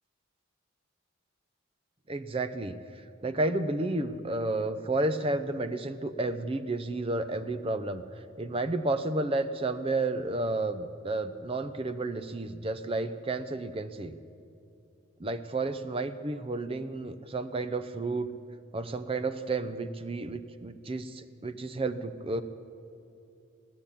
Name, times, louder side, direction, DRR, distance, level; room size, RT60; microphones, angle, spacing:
voice 1, 2.1-8.0 8.4-14.2 15.2-18.3 18.7-22.4, right 2 dB, 25° right, 12 dB, 0.5 m, -31 dB
16.5 x 10.5 x 8.4 m, 2.6 s
head